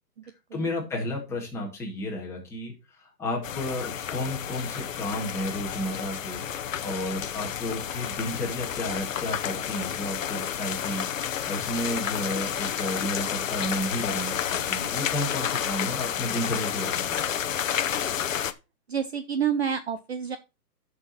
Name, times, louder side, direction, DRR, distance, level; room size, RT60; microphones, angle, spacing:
voice 1, 0.5-2.7 3.2-17.4, left 1 dB, 5° left, -3 dB, 1.9 m, -32 dB
sound 1, 3.4-18.5, left 9 dB, 50° left, 0.9 m, -30 dB
voice 2, 18.9-20.4, right 7 dB, 40° right, 11 dB, 0.6 m, -28 dB
9.7 x 6.4 x 4.2 m, 0.27 s
hypercardioid pair, 165°, 49 cm